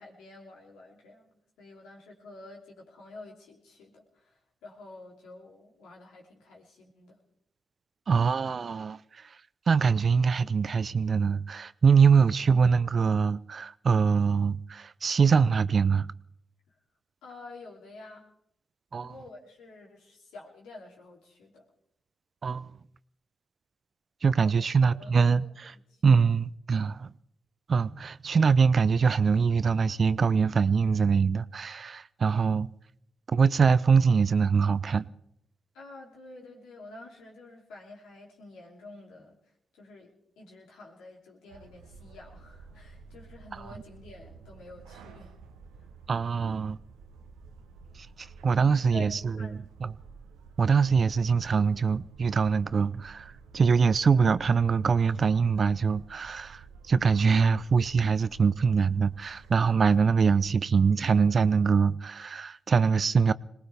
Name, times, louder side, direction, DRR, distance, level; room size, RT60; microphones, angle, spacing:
voice 1, 0.0-7.2 16.7-16.8 17.2-18.3 19.0-21.7 24.4-26.0 35.7-45.4 48.5-49.7, left 2 dB, 85° left, 2.9 m, -49 dB
voice 2, 8.1-9.0 9.7-16.1 18.9-19.1 22.4-22.7 24.2-25.7 26.0-27.1 27.7-32.7 33.3-35.0 46.1-46.8 48.0-49.9 50.6-63.3, right 5 dB, 55° right, 0.5 m, -23 dB
sound 1, 41.5-60.5, right 5 dB, 85° right, 0.9 m, -52 dB
21.5 x 19.0 x 3.4 m
supercardioid pair, 45°, 0 cm